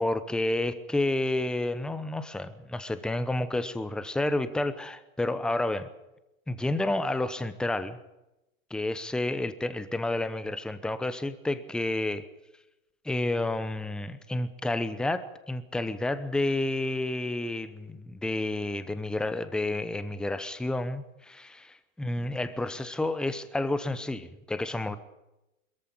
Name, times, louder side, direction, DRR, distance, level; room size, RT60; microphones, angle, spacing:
voice 1, 0.0-5.9 6.5-8.0 8.7-12.3 13.0-25.0, left 2 dB, ahead, 13 dB, 0.8 m, -30 dB
22.0 x 14.0 x 8.9 m, 0.96 s
hypercardioid pair, 125°, 41 cm